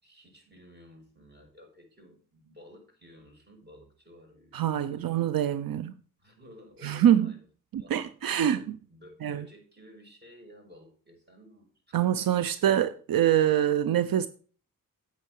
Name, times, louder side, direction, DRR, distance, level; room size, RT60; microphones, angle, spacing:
voice 1, 0.0-5.2 6.2-7.4 7.8-7.9 8.4-12.4 13.6-13.7, equal, 30° right, 6.1 m, -54 dB
voice 2, 4.5-5.9 6.8-7.3 7.7-8.8 9.2-9.4 11.9-14.3, right 10 dB, 80° right, 0.6 m, -25 dB
9.1 x 8.7 x 4.7 m
cardioid pair, 65°, 35 cm